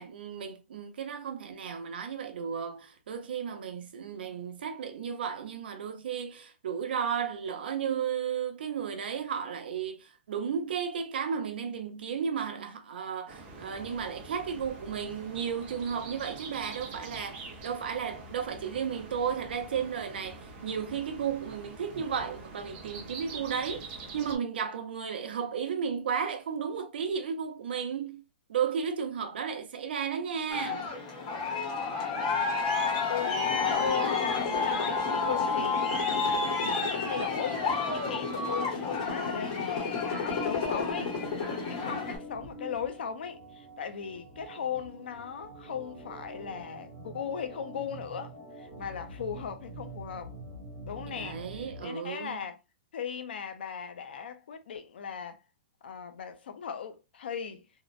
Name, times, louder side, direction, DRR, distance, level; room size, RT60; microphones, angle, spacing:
voice 1, 0.0-28.2 28.5-30.9 48.8-49.0 51.0-52.4, right 7 dB, 65° right, 0.6 m, -34 dB
sound 1, 13.3-24.4, right 3 dB, 20° right, 0.5 m, -45 dB
Aircraft, 30.5-42.2, left 4 dB, 35° left, 0.9 m, -30 dB
voice 2, 33.1-41.1 41.4-50.3 50.8-51.4 51.8-52.6 52.9-55.4 55.8-57.6, left 7 dB, 70° left, 0.5 m, -38 dB
Organ, 39.7-51.8, right 2 dB, 5° right, 1.0 m, -45 dB
2.8 x 2.0 x 2.4 m
hypercardioid pair, 175°, 6 cm